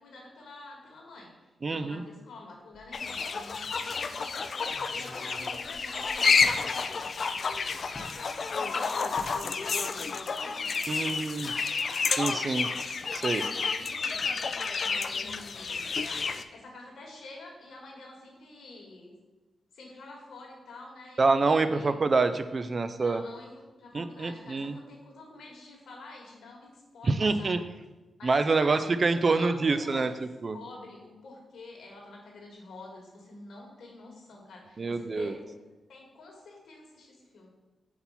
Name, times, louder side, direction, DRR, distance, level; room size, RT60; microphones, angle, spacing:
voice 1, 0.0-4.6 4.9-7.2 7.8-12.1 13.3-14.3 14.7-15.9 16.5-19.2 19.7-21.9 23.0-27.6 28.2-28.9 29.2-30.2 30.5-35.6 35.9-37.5, left 2 dB, 80° left, 0 dB, 1.4 m, -48 dB
voice 2, 1.6-2.0 10.9-11.5 12.2-12.7 13.1-13.4 21.2-23.2 23.9-24.7 27.1-27.6 28.2-30.6 34.8-35.3, right 3 dB, 45° right, 10 dB, 0.4 m, -26 dB
sound 1, 2.7-3.3 3.7-3.8 4.6-6.6 7.9-8.2 9.2-9.4 9.8-10.1 10.3-10.5, left 1 dB, 25° left, 1.0 m, -48 dB
sound 2, 2.9-16.4, left 5 dB, 60° left, 0.3 m, -30 dB
4.3 x 4.2 x 5.5 m, 1.1 s
cardioid pair, 60°, 0 cm